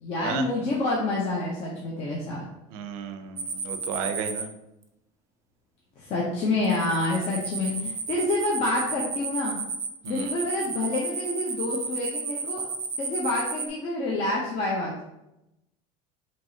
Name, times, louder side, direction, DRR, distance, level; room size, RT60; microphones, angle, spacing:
voice 1, 0.0-2.4 6.0-9.6 10.1-12.7 13.0-15.0, left 2 dB, 40° left, -3 dB, 0.7 m, -28 dB
voice 2, 2.7-4.5 10.0-10.3, right 7 dB, 90° right, 7 dB, 0.5 m, -33 dB
sound 1, 3.4-4.4 6.6-13.7, right 5 dB, 20° right, 0.3 m, -32 dB
4.6 x 2.8 x 2.7 m, 0.88 s
cardioid pair, 160°, 16 cm